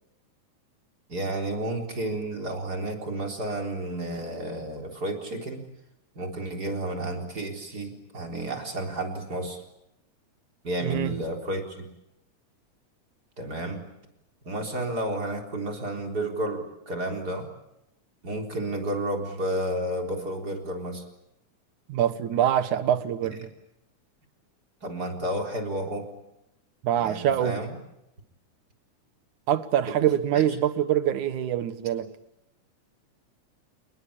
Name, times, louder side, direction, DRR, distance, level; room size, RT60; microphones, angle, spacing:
voice 1, 1.1-5.7 6.2-9.6 10.6-11.9 13.4-13.8 14.4-17.5 18.2-21.0 24.8-26.1 27.0-27.8 30.3-30.5, right 1 dB, 30° right, 4.3 m, -31 dB
voice 2, 10.8-11.1 21.9-23.5 26.8-27.6 29.5-32.1, right 10 dB, 75° right, 2.7 m, -24 dB
29.0 x 20.5 x 8.7 m
omnidirectional pair, 3.5 m